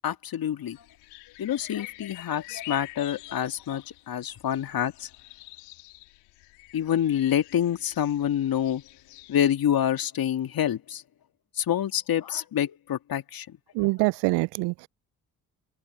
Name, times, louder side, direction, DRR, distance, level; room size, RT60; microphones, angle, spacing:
voice 1, 0.0-0.8 1.4-5.1 6.7-8.8 9.3-11.0 11.6-13.6, left 10 dB, 55° left, 2.3 m, -27 dB
sound 1, 0.7-9.5, left 24 dB, 75° left, 2.5 m, -47 dB
voice 2, 13.8-14.9, right 25 dB, 70° right, 0.6 m, -25 dB
hypercardioid pair, 40°, 42 cm